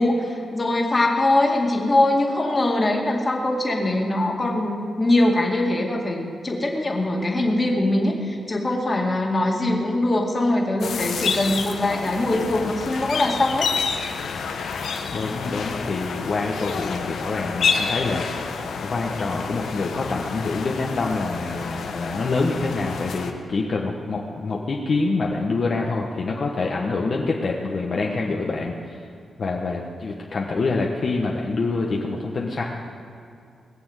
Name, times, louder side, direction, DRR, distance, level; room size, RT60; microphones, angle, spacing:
voice 1, 0.0-13.7, left 1 dB, 25° left, 0 dB, 2.2 m, -22 dB
sound 1, 10.8-23.3, left 5 dB, 80° left, 1.1 m, -29 dB
voice 2, 15.1-29.1 29.4-32.6, left 3 dB, 50° left, -1 dB, 1.2 m, -26 dB
20.5 x 7.1 x 8.1 m, 2.4 s
wide cardioid pair, 120°, 0 cm